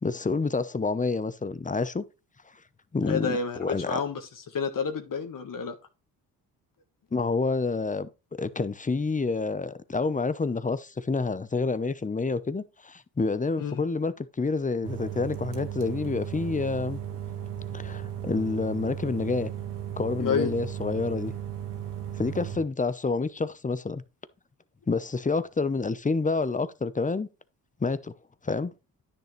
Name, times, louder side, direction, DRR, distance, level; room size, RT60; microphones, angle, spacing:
voice 1, 0.0-2.0 2.9-4.0 7.1-8.1 8.4-17.0 17.7-19.5 20.0-21.3 22.2-24.0 24.9-27.3 27.8-28.1 28.4-28.7, left 4 dB, 20° left, 0.8 m, -28 dB
voice 2, 3.1-3.6 3.9-4.2 4.5-5.7 13.6-13.8 20.2-20.5, left 6 dB, 50° left, 1.5 m, -29 dB
sound 1, 14.8-22.6, right 10 dB, 80° right, 2.0 m, -36 dB
10.0 x 6.6 x 3.2 m
supercardioid pair, 70°, 41 cm